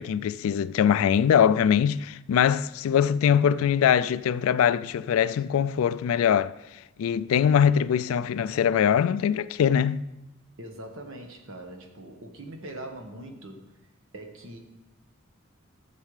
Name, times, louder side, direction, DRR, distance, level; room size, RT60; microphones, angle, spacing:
voice 1, 0.0-6.5 7.0-10.0, left 8 dB, 75° left, 0.3 m, -22 dB
voice 2, 10.6-13.7 14.1-14.6, right 1 dB, 65° right, 1.3 m, -41 dB
12.5 x 7.4 x 3.3 m
head